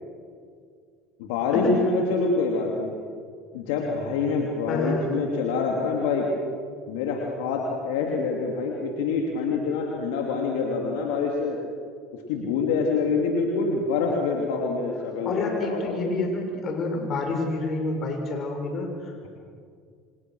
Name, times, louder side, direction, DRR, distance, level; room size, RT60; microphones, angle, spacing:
voice 1, 1.2-2.9 3.5-6.2 6.9-11.6 12.3-16.1, left 4 dB, 75° left, 0 dB, 3.2 m, -26 dB
voice 2, 4.7-5.0 15.2-19.3, left 3 dB, 50° left, 2 dB, 6.6 m, -28 dB
29.0 x 26.0 x 6.5 m, 2.2 s
hypercardioid pair, 75°, 0 cm